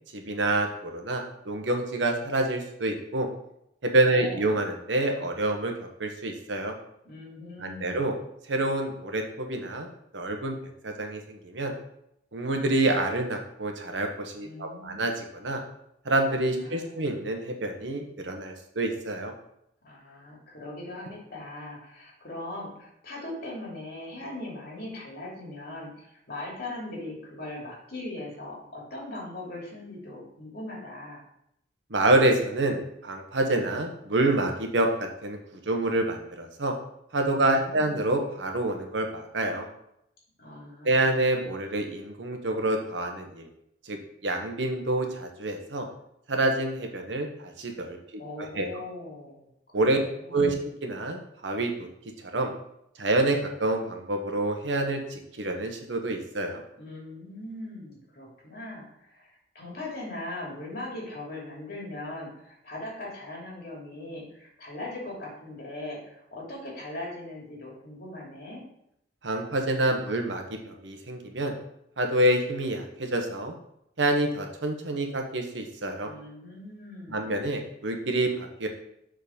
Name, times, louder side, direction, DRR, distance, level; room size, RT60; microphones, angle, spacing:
voice 1, 0.1-3.3 3.8-6.7 7.6-8.1 8.5-9.9 10.1-10.6 10.8-11.7 12.3-15.6 16.0-19.3 31.9-35.4 35.7-36.7 37.1-39.7 40.8-43.5 43.9-44.0 44.2-45.9 46.3-48.0 48.6-48.7 49.7-50.0 50.3-50.5 50.8-51.9 52.3-52.5 53.0-56.6 69.2-71.6 72.0-73.5 74.0-76.1 77.1-78.7, right 2 dB, 75° right, 3 dB, 1.1 m, -27 dB
voice 2, 4.1-4.7 7.0-8.2 14.4-15.0 16.5-17.2 19.8-31.2 37.4-38.0 40.4-41.3 48.2-50.5 56.8-59.3 59.5-68.6 76.0-77.3, left 2 dB, 55° left, -3 dB, 2.7 m, -40 dB
6.9 x 3.9 x 5.1 m, 0.77 s
head